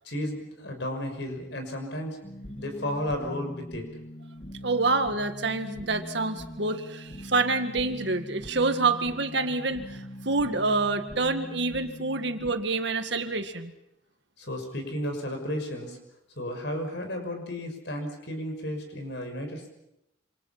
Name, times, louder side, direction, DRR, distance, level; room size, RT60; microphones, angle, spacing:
voice 1, 0.0-2.2 2.6-3.9 14.4-16.0 16.4-19.7, left 1 dB, 65° left, 4 dB, 6.0 m, -33 dB
sound 1, 2.2-12.5, equal, 30° left, 2.6 m, -42 dB
voice 2, 4.6-13.7, right 3 dB, 65° right, 7 dB, 2.0 m, -27 dB
27.5 x 27.0 x 5.9 m, 0.84 s
head